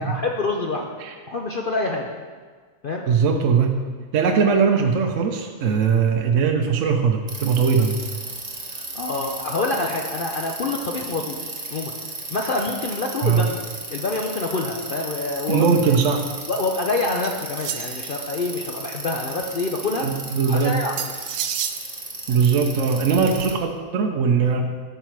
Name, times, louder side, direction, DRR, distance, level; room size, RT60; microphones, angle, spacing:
voice 1, 0.0-0.9 1.3-2.1 2.8-3.0 8.7-11.9 12.3-13.6 13.9-15.7 16.5-20.1 20.5-21.1, left 3 dB, 55° left, 1 dB, 0.5 m, -26 dB
voice 2, 3.1-3.8 4.1-8.0 13.2-13.5 15.5-16.3 20.0-20.8 22.3-24.7, right 6 dB, 60° right, 3 dB, 0.9 m, -20 dB
Bicycle, 7.3-23.5, right 2 dB, 30° right, 1.1 m, -35 dB
sound 1, 17.2-18.2 21.0-21.8, right 9 dB, 80° right, 1.1 m, -29 dB
11.5 x 5.7 x 4.6 m, 1.5 s
omnidirectional pair, 1.7 m